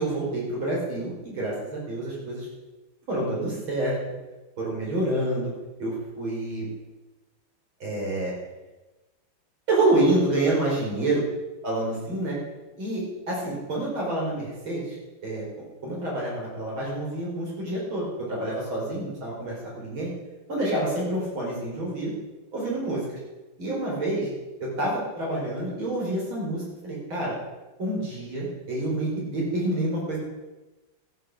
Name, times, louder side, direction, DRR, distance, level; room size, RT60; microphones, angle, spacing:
voice 1, 0.0-2.5 3.1-4.0 4.6-5.5 5.8-6.7 7.8-8.3 9.7-11.3 11.6-12.4 12.8-15.0 15.2-15.4 15.8-20.1 20.5-22.1 22.5-23.1 23.6-24.3 24.6-27.3 27.8-30.2, right 1 dB, 90° right, -4 dB, 5.3 m, -27 dB
13.5 x 9.6 x 6.6 m, 1.1 s
omnidirectional pair, 2.2 m